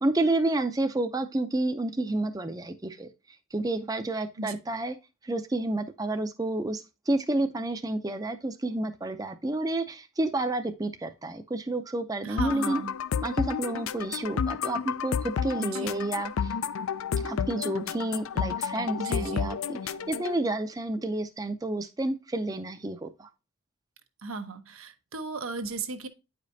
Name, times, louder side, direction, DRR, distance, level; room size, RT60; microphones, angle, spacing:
voice 1, 0.0-3.1 3.5-4.9 5.2-12.8 13.2-16.5 17.2-23.3, right 2 dB, 15° right, 0.5 m, -30 dB
voice 2, 12.2-12.9 15.6-16.1 19.0-19.6 24.2-26.1, right 3 dB, 85° right, 1.0 m, -36 dB
sound 1, 12.4-20.4, left 7 dB, 75° left, 0.4 m, -31 dB
9.2 x 5.1 x 2.7 m
head